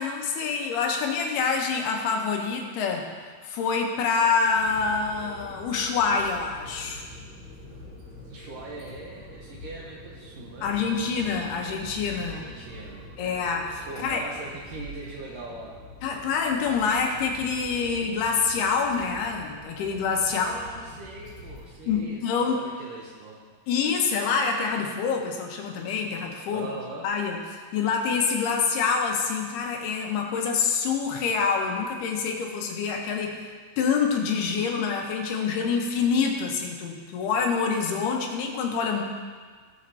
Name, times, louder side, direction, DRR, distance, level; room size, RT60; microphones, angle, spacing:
voice 1, 0.0-3.1 3.4-7.1 10.6-12.5 13.2-14.2 16.0-20.5 21.9-22.6 23.7-26.7 27.0-27.4 27.7-33.5 33.8-39.0, left 5 dB, 80° left, 1 dB, 2.9 m, -26 dB
sound 1, 4.4-22.0, left 1 dB, 45° right, 3.3 m, -45 dB
voice 2, 8.2-11.1 12.3-13.0 13.9-15.7 20.3-23.5 26.5-27.1, right 2 dB, 75° right, -2 dB, 2.1 m, -41 dB
18.5 x 6.4 x 2.8 m, 1.5 s
omnidirectional pair, 4.7 m